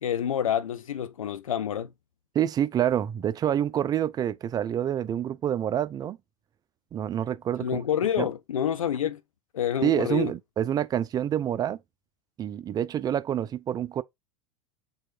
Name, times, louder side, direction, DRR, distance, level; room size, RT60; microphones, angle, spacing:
voice 1, 0.0-1.9 7.6-9.2 9.5-10.3, left 9 dB, 75° left, 0.5 m, -28 dB
voice 2, 2.3-6.2 6.9-7.8 8.2-8.3 9.8-11.8 12.4-14.0, right 10 dB, 20° right, 0.3 m, -27 dB
4.0 x 3.1 x 4.2 m
figure-of-eight pair, 85°, 17 cm